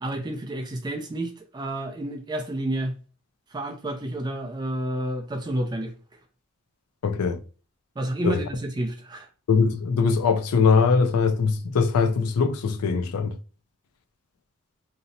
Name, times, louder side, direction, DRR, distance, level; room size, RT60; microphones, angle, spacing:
voice 1, 0.0-2.9 3.5-5.9 8.0-9.3, right 1 dB, 20° right, 0.3 m, -30 dB
voice 2, 7.0-7.4 8.2-8.4 9.5-13.4, left 5 dB, 85° left, 0.4 m, -21 dB
2.7 x 2.0 x 2.6 m
head